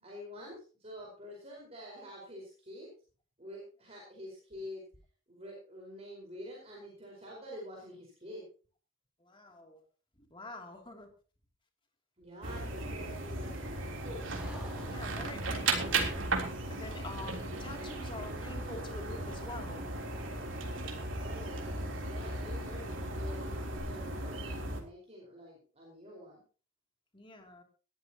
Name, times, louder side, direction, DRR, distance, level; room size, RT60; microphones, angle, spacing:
voice 1, 0.0-2.9 3.4-4.8 5.3-8.4 12.2-14.3 21.2-26.4, equal, 30° right, -3 dB, 4.9 m, -47 dB
voice 2, 9.2-9.8 10.2-11.1 14.8-19.9 27.1-27.6, left 2 dB, 25° left, 3 dB, 2.9 m, -47 dB
sound 1, 12.4-24.8, right 2 dB, 75° right, 3.5 m, -36 dB
sound 2, 13.2-23.8, right 1 dB, 5° right, 5.5 m, -55 dB
20.0 x 13.5 x 3.0 m, 0.38 s
head